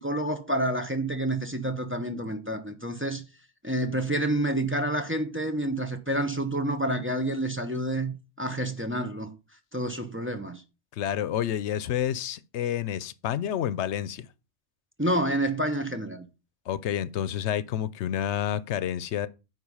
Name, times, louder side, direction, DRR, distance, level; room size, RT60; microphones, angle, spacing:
voice 1, 0.0-3.2 3.6-9.3 9.7-10.6 15.0-16.3, right 1 dB, 10° right, 0.8 m, -28 dB
voice 2, 10.9-14.3 16.7-19.3, left 10 dB, 85° left, 0.9 m, -29 dB
9.5 x 4.0 x 5.4 m
omnidirectional pair, 1.1 m